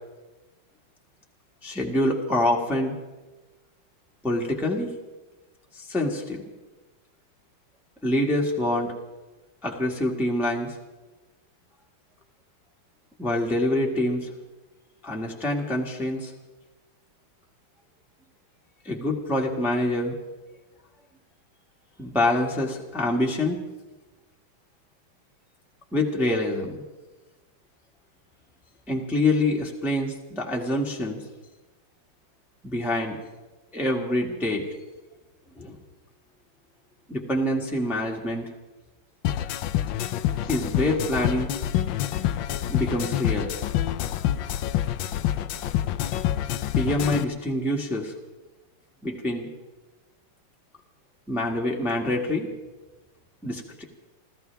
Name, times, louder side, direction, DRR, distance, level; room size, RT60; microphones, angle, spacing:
voice 1, 1.6-2.9 4.2-4.9 5.7-6.4 8.0-8.9 9.6-10.7 13.2-14.3 15.0-16.3 18.8-20.2 22.0-23.6 25.9-26.8 28.9-31.2 32.6-33.2 33.7-34.7 35.6-35.8 37.1-38.5 40.5-41.5 42.7-43.5 46.8-48.1 49.0-49.5 51.3-52.5 53.4-53.8, left 1 dB, ahead, -1 dB, 1.6 m, -26 dB
sound 1, 39.2-47.2, left 12 dB, 70° left, 1.2 m, -27 dB
27.5 x 15.0 x 3.5 m, 1.2 s
omnidirectional pair, 2.4 m